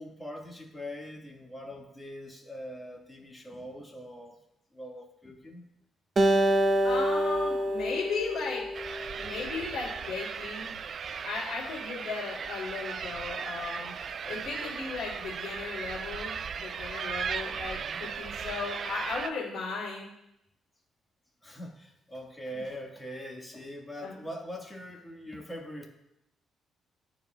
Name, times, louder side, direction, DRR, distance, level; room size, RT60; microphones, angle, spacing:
voice 1, 0.0-4.4 4.7-5.6 17.6-18.0 21.4-25.8, equal, 10° left, 0 dB, 1.5 m, -42 dB
Acoustic guitar, 6.2-9.5, right 1 dB, 35° right, 0.7 m, -27 dB
voice 2, 6.8-8.6 9.1-10.7 11.2-13.9 14.3-20.1 22.5-22.7 24.0-24.2, left 4 dB, 75° left, -8 dB, 2.5 m, -36 dB
sound 1, 8.7-19.3, right 6 dB, 55° right, 0.3 m, -37 dB
13.5 x 4.7 x 2.2 m, 0.83 s
cardioid pair, 90°, 0 cm